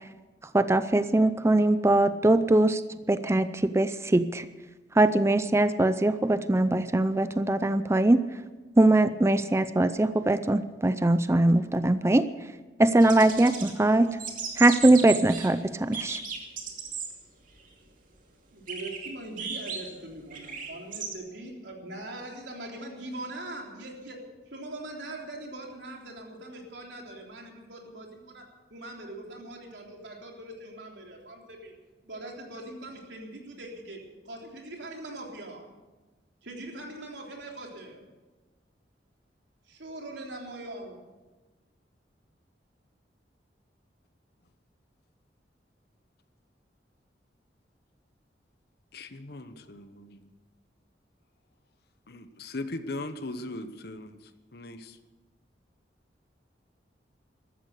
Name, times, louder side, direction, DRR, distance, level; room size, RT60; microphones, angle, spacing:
voice 1, 0.5-2.8 3.1-4.5 5.0-8.2 8.8-12.2 12.8-14.1 14.6-16.2, right 2 dB, 15° right, 0.4 m, -22 dB
sound 1, 13.0-13.7 14.1-15.5 15.9-17.1 17.5-17.6 18.7-21.1, right 6 dB, 50° right, 2.5 m, -36 dB
voice 2, 18.5-24.2 24.5-31.7 32.0-34.0 34.3-35.7 36.4-38.0 39.7-41.0, right 1 dB, 90° right, 3.5 m, -41 dB
voice 3, 48.9-50.2 52.1-54.2 54.5-55.0, left 2 dB, 65° left, 1.1 m, -39 dB
14.5 x 13.0 x 6.7 m
head